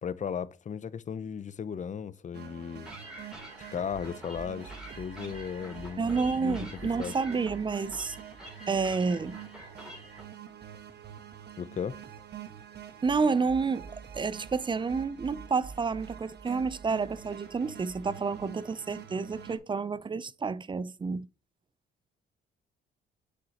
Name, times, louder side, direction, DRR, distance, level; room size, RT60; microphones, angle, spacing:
voice 1, 0.0-2.9 3.7-7.1 11.6-12.0, left 7 dB, 40° left, 0.6 m, -36 dB
sound 1, 2.3-19.6, right 8 dB, 60° right, 1.3 m, -46 dB
sound 2, 2.9-10.3, equal, 5° right, 3.1 m, -48 dB
voice 2, 6.0-8.2 8.7-9.4 13.0-13.9 14.1-21.3, right 4 dB, 25° right, 0.5 m, -29 dB
7.6 x 6.5 x 2.9 m
cardioid pair, 90°, 20 cm